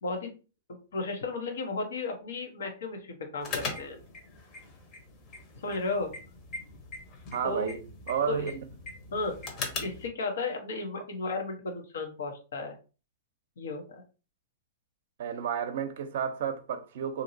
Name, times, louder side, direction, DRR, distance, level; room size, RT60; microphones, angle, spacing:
voice 1, 0.0-0.3 0.9-4.0 5.6-6.1 7.4-7.7 8.3-8.4 9.1-9.3 9.8-12.7 13.6-13.8, left 3 dB, 80° left, 0.9 m, -34 dB
sound 1, 3.4-10.1, left 3 dB, 35° left, 0.9 m, -40 dB
voice 2, 7.3-8.5 15.2-17.2, right 7 dB, 65° right, 0.5 m, -32 dB
2.8 x 2.7 x 2.7 m
hypercardioid pair, 130°, 0 cm